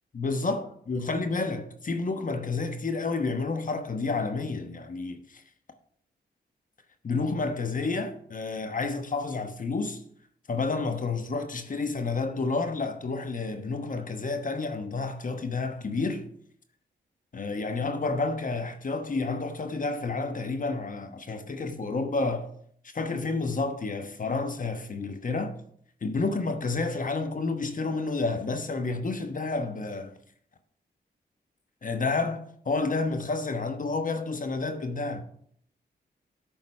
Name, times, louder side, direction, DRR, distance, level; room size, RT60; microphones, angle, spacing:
voice 1, 0.1-5.4 7.0-10.0 10.5-16.3 17.3-22.5 22.9-25.6 26.0-30.1 31.8-35.2, left 3 dB, 45° left, 1.2 m, -30 dB
11.0 x 3.9 x 5.4 m
cardioid pair, 55°, 18 cm